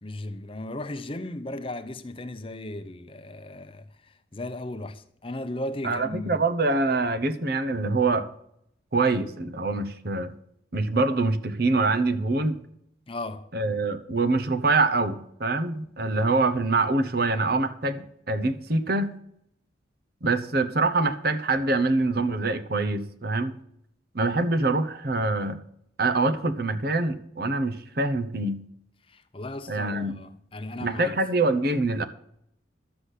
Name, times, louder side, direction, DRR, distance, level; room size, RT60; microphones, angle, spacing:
voice 1, 0.0-6.4 13.1-13.5 29.1-31.2, left 1 dB, 30° left, 0.7 m, -36 dB
voice 2, 5.8-8.3 8.9-10.3 10.7-12.6 13.5-19.2 20.2-23.6 24.1-25.6 26.0-28.6 29.7-30.2 30.8-32.0, right 3 dB, 50° right, 0.9 m, -25 dB
12.5 x 6.0 x 8.3 m
head